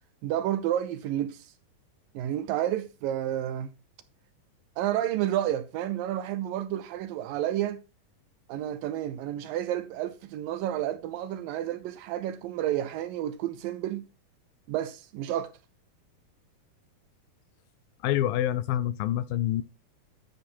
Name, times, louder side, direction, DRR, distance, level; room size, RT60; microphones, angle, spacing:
voice 1, 0.2-1.5 2.1-3.7 4.8-7.8 8.5-14.0 14.7-15.5, right 12 dB, 75° right, 2.1 m, -30 dB
voice 2, 18.0-19.6, left 12 dB, 80° left, 2.2 m, -26 dB
12.5 x 5.9 x 4.3 m
omnidirectional pair, 4.4 m